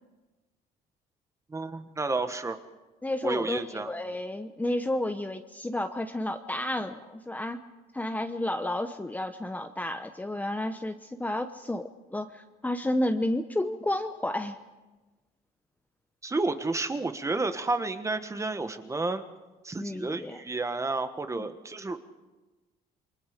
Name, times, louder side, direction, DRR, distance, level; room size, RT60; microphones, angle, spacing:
voice 1, 1.5-2.6 3.2-3.9 16.2-19.2 19.6-22.0, right 3 dB, 15° right, 9 dB, 1.3 m, -31 dB
voice 2, 3.0-7.6 7.9-14.6 19.7-20.4 21.4-21.5, left 1 dB, 10° left, 7 dB, 0.9 m, -31 dB
28.5 x 22.0 x 5.1 m, 1.2 s
cardioid pair, 110°, 17 cm